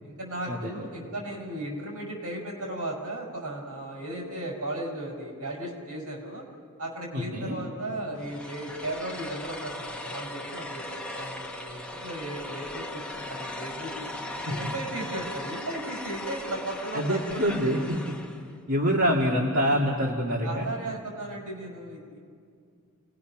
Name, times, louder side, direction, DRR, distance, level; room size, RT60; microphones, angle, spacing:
voice 1, 0.0-6.5 6.8-10.8 11.1-17.9 20.4-22.2, right 1 dB, 80° right, -1 dB, 5.4 m, -36 dB
voice 2, 7.1-7.6 14.5-14.7 16.9-18.0 18.7-20.7, equal, 60° right, -3 dB, 2.1 m, -26 dB
sound 1, 8.2-18.5, left 1 dB, 5° left, 1.1 m, -38 dB
29.5 x 19.5 x 6.0 m, 2.2 s
head